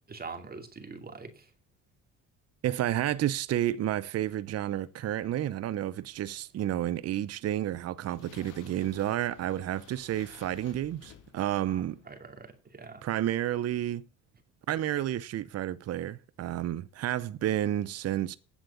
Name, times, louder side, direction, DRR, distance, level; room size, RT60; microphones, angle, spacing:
voice 1, 0.1-1.5 11.7-13.0, right 4 dB, 30° right, 2.6 m, -44 dB
voice 2, 2.6-12.0 13.0-14.1 14.7-18.4, right 12 dB, 50° right, 0.7 m, -31 dB
sound 1, 7.5-12.5, left 9 dB, 75° left, 2.1 m, -55 dB
9.3 x 7.5 x 8.3 m
supercardioid pair, 85°, 32 cm